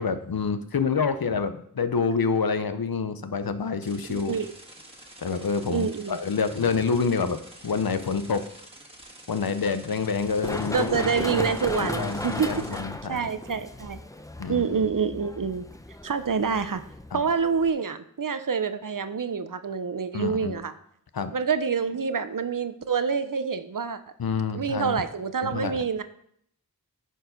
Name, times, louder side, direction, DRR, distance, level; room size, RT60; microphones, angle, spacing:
voice 1, 0.0-4.3 5.2-8.4 9.3-11.1 11.3-13.3 14.4-14.6 17.1-17.2 20.1-20.5 21.1-21.3 24.2-25.0 25.4-26.0, left 5 dB, 80° left, 10 dB, 0.7 m, -27 dB
sound 1, 3.8-12.8, right 1 dB, 15° right, 1.6 m, -48 dB
voice 2, 4.1-4.5 5.7-6.2 10.7-12.8 13.1-14.0 14.5-15.7 16.0-16.8 17.1-20.7 21.3-24.0 24.5-26.0, right 6 dB, 65° right, 11 dB, 0.7 m, -27 dB
Run, 10.1-17.7, left 1 dB, 10° left, 0.6 m, -35 dB
10.0 x 4.7 x 5.1 m, 0.69 s
wide cardioid pair, 45°, 35 cm